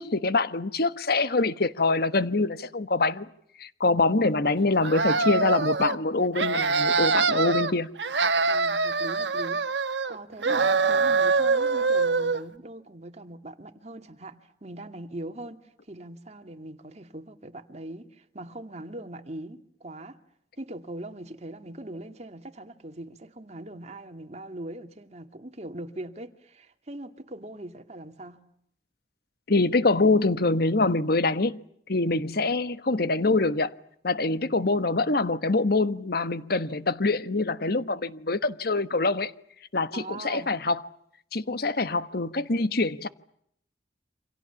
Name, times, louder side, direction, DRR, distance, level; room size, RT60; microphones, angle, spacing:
voice 1, 0.0-3.3 3.6-7.9 29.5-31.6 31.9-33.7 34.0-39.3 39.7-40.8 41.3-43.1, left 3 dB, 60° left, 1.3 m, -25 dB
sound 1, 4.8-6.0 6.3-7.7 8.0-10.2 10.4-12.4, right 4 dB, 90° right, 1.4 m, -24 dB
voice 2, 8.5-9.6 10.1-15.6 15.9-20.2 20.6-28.4 39.9-40.5, right 1 dB, 40° right, 2.3 m, -41 dB
28.5 x 26.5 x 7.1 m
head